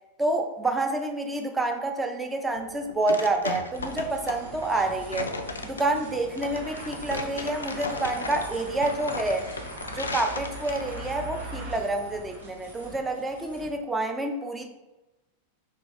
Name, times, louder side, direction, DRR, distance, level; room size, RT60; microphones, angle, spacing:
voice 1, 0.2-5.3 5.6-9.5 9.9-14.7, right 2 dB, 10° right, 4 dB, 0.4 m, -28 dB
sound 1, 2.6-11.1, left 3 dB, 75° left, 0.3 m, -36 dB
sound 2, 3.7-13.7, right 1 dB, 75° right, 1.0 m, -41 dB
2.9 x 2.6 x 3.5 m, 1.1 s
figure-of-eight pair, 90°, 0 cm